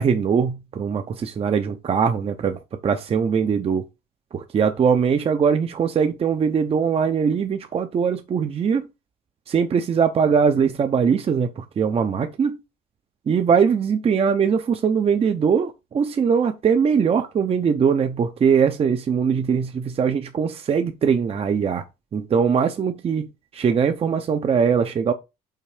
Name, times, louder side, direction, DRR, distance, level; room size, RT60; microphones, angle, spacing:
voice 1, 0.0-3.8 4.3-8.9 9.5-12.6 13.3-21.8 22.1-23.3 23.5-25.1, right 6 dB, 35° right, 0.7 m, -21 dB
5.7 x 3.9 x 5.0 m
cardioid pair, 110°, 17 cm